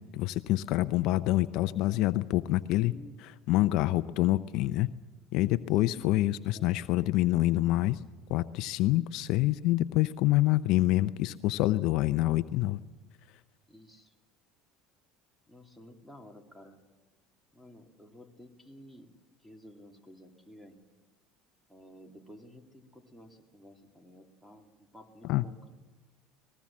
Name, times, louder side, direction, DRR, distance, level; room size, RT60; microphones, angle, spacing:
voice 1, 0.1-2.9 3.5-4.9 5.3-8.0 8.3-12.8 25.2-25.4, left 16 dB, 65° left, 13 dB, 0.6 m, -26 dB
voice 2, 2.8-3.2 5.9-7.0 13.7-14.1 15.5-16.8 17.5-20.9 21.7-25.8, equal, ahead, 5 dB, 2.9 m, -53 dB
23.0 x 20.0 x 7.5 m, 1.2 s
supercardioid pair, 90°, 0 cm